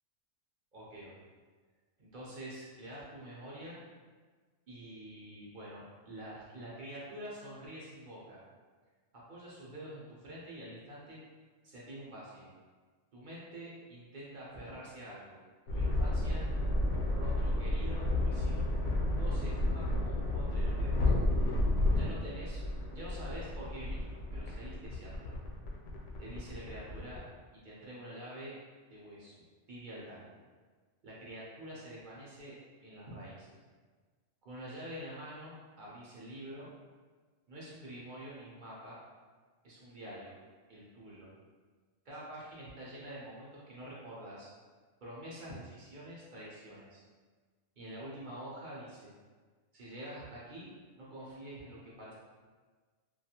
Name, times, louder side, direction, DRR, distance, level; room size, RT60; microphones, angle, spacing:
voice 1, 0.7-1.1 2.0-3.8 4.7-8.4 9.3-11.2 11.6-12.5 13.1-15.4 15.7-16.5 17.0-18.7 19.2-21.1 22.0-22.6 22.9-25.3 26.2-27.2 27.5-28.6 28.9-29.3 29.7-30.2 31.0-33.5 34.4-36.7 37.5-39.0 39.6-40.4 40.7-41.3 42.0-44.5 45.0-47.0 47.8-49.1 49.7-50.7 51.0-52.1, right 1 dB, 55° right, -6 dB, 0.6 m, -47 dB
sound 1, 15.7-27.2, left 1 dB, 80° left, 0.9 m, -31 dB
2.4 x 2.3 x 2.7 m, 1.4 s
omnidirectional pair, 1.3 m